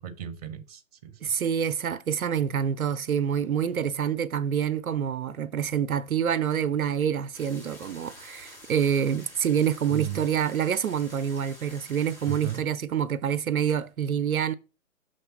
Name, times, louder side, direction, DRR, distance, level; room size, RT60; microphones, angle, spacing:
voice 1, 0.0-1.4 9.9-10.3 12.3-12.7, right 12 dB, 30° right, 0.8 m, -36 dB
voice 2, 1.2-14.5, right 8 dB, 85° right, 0.7 m, -27 dB
sound 1, 7.3-12.6, left 1 dB, 5° left, 1.6 m, -48 dB
6.5 x 3.3 x 5.6 m
figure-of-eight pair, 140°, 42 cm